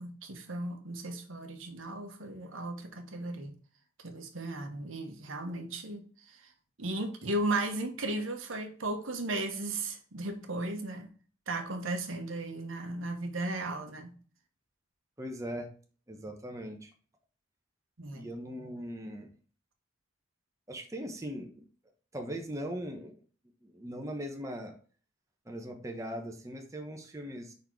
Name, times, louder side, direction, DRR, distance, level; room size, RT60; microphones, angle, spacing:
voice 1, 0.0-3.5 4.0-6.0 6.3-6.4 6.8-11.1 11.5-14.1 18.0-18.2, right 2 dB, 80° right, 5 dB, 1.2 m, -35 dB
voice 2, 15.2-15.7 16.1-16.9 18.1-19.3 20.7-21.7 22.1-23.1 23.6-24.7 25.4-27.5, equal, 15° right, 3 dB, 1.0 m, -40 dB
5.4 x 4.3 x 4.6 m, 0.40 s
head